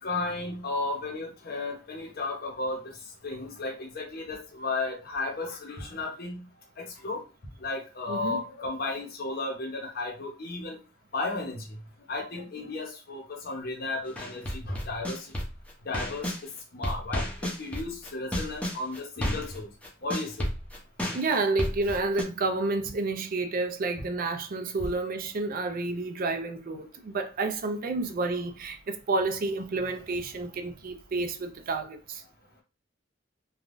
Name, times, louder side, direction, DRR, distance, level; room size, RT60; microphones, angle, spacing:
voice 1, 0.0-6.5 6.8-7.2 7.6-10.8 11.1-11.8 12.1-15.3 15.8-19.7 20.0-20.5, left 3 dB, 50° left, 0.7 m, -34 dB
voice 2, 8.1-8.4 21.1-32.2, right 3 dB, 45° right, 0.4 m, -30 dB
sound 1, 14.2-16.4 16.8-22.2, equal, 5° left, 0.7 m, -32 dB
3.4 x 2.2 x 2.5 m
head